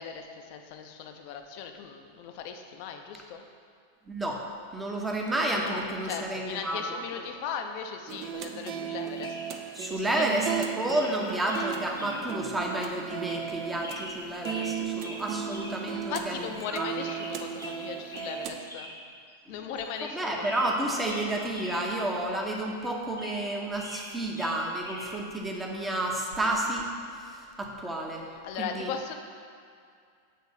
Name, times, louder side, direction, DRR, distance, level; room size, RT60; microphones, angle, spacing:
voice 1, 0.0-3.4 5.6-9.6 9.9-10.3 16.1-18.9 19.5-20.5 28.4-29.1, left 7 dB, 45° left, 5 dB, 0.6 m, -38 dB
voice 2, 4.1-4.5 4.7-7.0 9.7-16.5 16.7-17.1 19.5-19.6 20.0-26.9 27.1-28.3 28.6-28.9, right 1 dB, 10° right, 0 dB, 0.9 m, -31 dB
sound 1, 8.1-18.6, right 8 dB, 40° right, 0.4 m, -36 dB
sound 2, 8.7-8.9 9.2-9.5 9.8-9.9 10.3-10.6 10.9-11.2 11.5-11.7 12.0-12.2 12.6-12.7 13.2-13.5 13.8-14.7 15.0-15.2 15.5-15.8 16.1-16.2 16.5-16.7 17.0-17.8 18.1-18.4 18.7-18.9 19.3-19.4 19.8-20.2 20.4-21.8 22.1-22.2 22.7-24.1 24.4-25.1 26.3-26.5, left 1 dB, 85° left, 1.2 m, -43 dB
7.4 x 3.5 x 5.7 m, 2.3 s
figure-of-eight pair, 90°, 0 cm